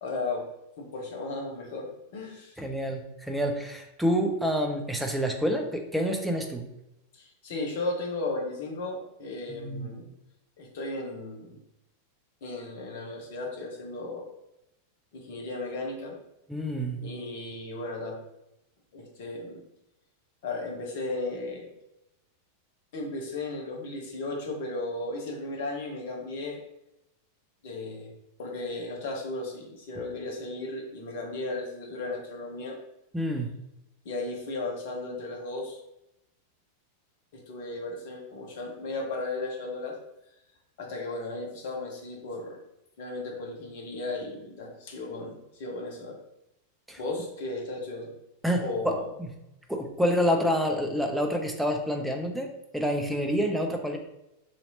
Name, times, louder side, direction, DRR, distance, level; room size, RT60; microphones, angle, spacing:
voice 1, 0.0-0.5 0.8-2.6 7.1-10.1 10.6-11.6 12.4-14.3 15.1-16.2 17.0-18.2 18.9-19.6 20.4-21.7 22.9-26.6 27.6-28.1 28.4-32.8 34.0-35.8 37.3-40.0 40.8-42.6 43.0-46.2 47.0-48.1 48.6-49.1, left 2 dB, 50° left, 0 dB, 0.9 m, -35 dB
voice 2, 2.6-6.6 9.5-9.9 16.5-17.0 33.1-33.5 46.9-47.0 48.4-49.3 49.7-52.5 52.7-54.0, equal, 5° right, 3 dB, 0.6 m, -28 dB
3.1 x 2.8 x 4.0 m, 0.87 s
figure-of-eight pair, 90°, 0 cm